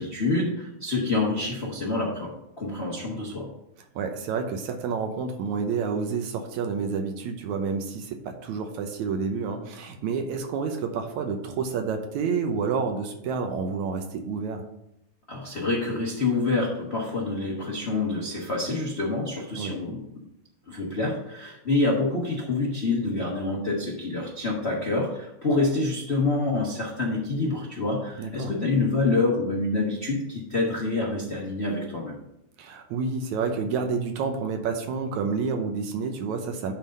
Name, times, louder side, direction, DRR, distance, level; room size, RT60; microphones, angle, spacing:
voice 1, 0.0-3.5 15.3-20.0 20.7-32.1, left 3 dB, 85° left, -3 dB, 0.5 m, -27 dB
voice 2, 4.0-14.6 19.6-19.8 28.2-28.5 32.6-36.7, right 5 dB, 75° right, 5 dB, 2.1 m, -29 dB
10.0 x 3.9 x 5.3 m, 0.82 s
omnidirectional pair, 3.5 m